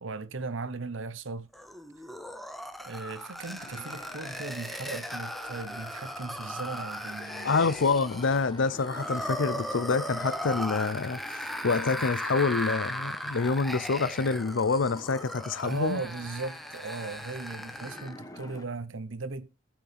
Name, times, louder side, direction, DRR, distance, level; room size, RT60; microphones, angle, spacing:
voice 1, 0.0-1.5 2.8-7.7 15.6-19.6, right 3 dB, 75° right, 0.8 m, -37 dB
sound 1, 1.5-18.2, equal, ahead, 0.6 m, -37 dB
sound 2, 3.5-18.7, left 2 dB, 20° left, 1.1 m, -48 dB
voice 2, 7.4-16.0, left 4 dB, 70° left, 0.6 m, -27 dB
18.0 x 6.1 x 3.4 m
head